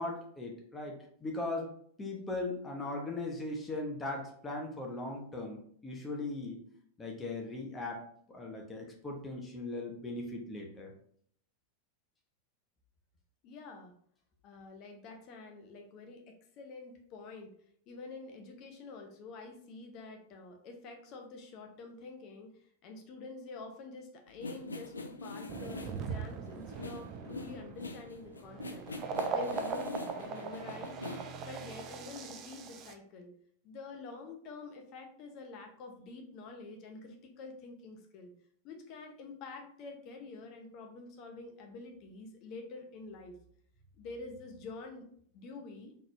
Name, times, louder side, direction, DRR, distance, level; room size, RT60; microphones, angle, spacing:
voice 1, 0.0-1.7 2.0-6.6 7.0-10.9, left 2 dB, 15° left, 0 dB, 0.9 m, -39 dB
voice 2, 13.4-13.9 14.4-16.2 16.6-17.5 17.9-22.5 22.8-28.8 29.3-31.0 31.4-33.3 33.6-38.3 38.6-43.3 44.0-45.1 45.3-45.9, left 3 dB, 40° left, 3 dB, 0.8 m, -47 dB
sound 1, 24.3-31.4, left 3 dB, 75° left, 0.4 m, -44 dB
sound 2, 25.5-32.9, right 5 dB, 35° right, 0.4 m, -40 dB
3.9 x 3.2 x 2.6 m, 0.62 s
figure-of-eight pair, 90°, 0 cm